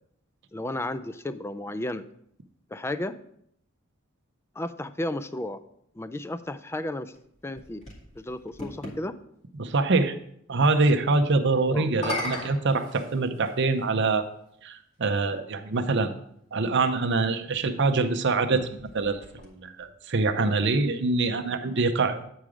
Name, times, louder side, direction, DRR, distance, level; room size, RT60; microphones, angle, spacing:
voice 1, 0.5-2.0 2.7-3.2 4.6-5.6 6.0-7.1 7.4-7.8 8.2-9.1 11.7-11.9, left 1 dB, 10° left, 12 dB, 0.4 m, -33 dB
sound 1, 7.1-9.0 11.8-13.6 14.5-14.6 18.3-19.9, left 2 dB, 35° left, 2.5 m, -37 dB
voice 2, 9.6-10.1 10.5-14.3 14.6-16.1 16.5-18.7 18.9-22.3, right 3 dB, 60° right, 7 dB, 0.7 m, -24 dB
9.1 x 4.8 x 4.9 m, 0.71 s
head